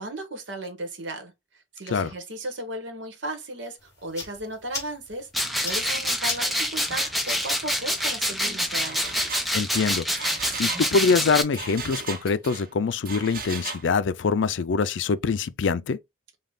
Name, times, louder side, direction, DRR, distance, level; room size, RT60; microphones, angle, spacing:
voice 1, 0.0-1.3 1.7-9.2, right 1 dB, 85° right, 1.3 m, -35 dB
sound 1, 3.8-11.2, left 3 dB, 15° left, 2.4 m, -42 dB
sound 2, 5.3-11.4, equal, ahead, 0.6 m, -26 dB
Engine, 6.9-7.1 7.4-7.6 7.9-12.7 13.1-13.9, right 5 dB, 50° right, 0.9 m, -37 dB
voice 2, 9.5-16.0, left 5 dB, 85° left, 0.4 m, -24 dB
5.3 x 2.4 x 3.7 m
head